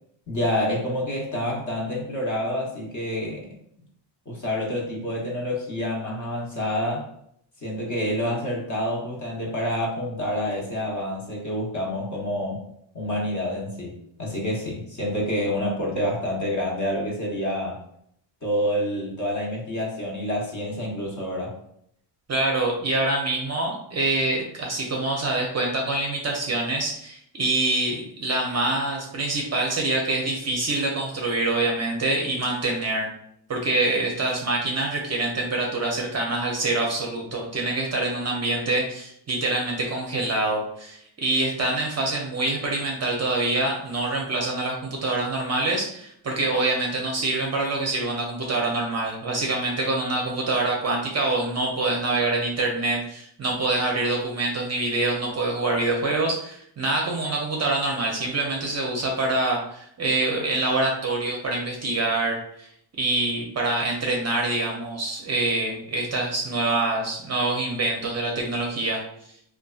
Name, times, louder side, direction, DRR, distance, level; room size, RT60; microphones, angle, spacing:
voice 1, 0.3-3.5 4.3-7.1 7.6-12.6 12.9-17.8 18.4-21.6, equal, 35° left, -2 dB, 0.9 m, -28 dB
voice 2, 22.3-33.1 33.5-62.7 63.0-69.0, right 2 dB, 35° right, -1 dB, 0.5 m, -25 dB
2.6 x 2.3 x 2.3 m, 0.69 s
cardioid pair, 100°, 49 cm